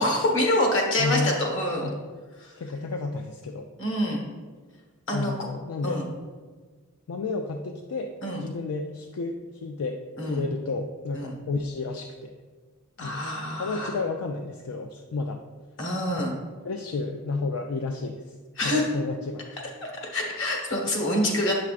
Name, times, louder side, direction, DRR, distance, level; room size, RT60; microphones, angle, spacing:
voice 1, 0.0-1.9 2.4-2.5 3.8-4.2 5.1-5.3 5.8-6.1 8.2-8.4 10.2-10.4 11.1-11.3 13.0-14.0 15.8-16.3 18.6-18.9 19.8-21.5, left 1 dB, 60° left, 0 dB, 1.4 m, -26 dB
voice 2, 1.0-1.4 1.8-2.0 2.6-3.7 5.1-6.0 7.1-8.1 8.4-10.0 10.3-12.3 13.0-13.2 13.6-15.4 16.2-16.4 16.6-18.3 18.6-19.6, left 3 dB, 80° left, 4 dB, 0.4 m, -31 dB
8.2 x 6.0 x 2.5 m, 1.4 s
head